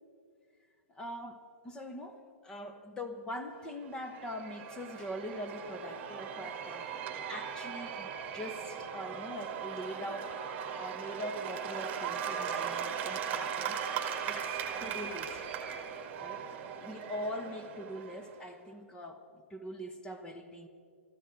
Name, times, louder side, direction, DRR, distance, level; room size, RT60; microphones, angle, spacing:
voice 1, 0.9-10.4 10.8-13.8 14.2-15.5 16.2-20.7, equal, 10° left, 8 dB, 1.0 m, -43 dB
Cheering / Applause / Crowd, 3.7-18.4, right 7 dB, 25° right, 1.9 m, -38 dB
20.5 x 14.5 x 4.6 m, 2.2 s
hypercardioid pair, 145°, 7 cm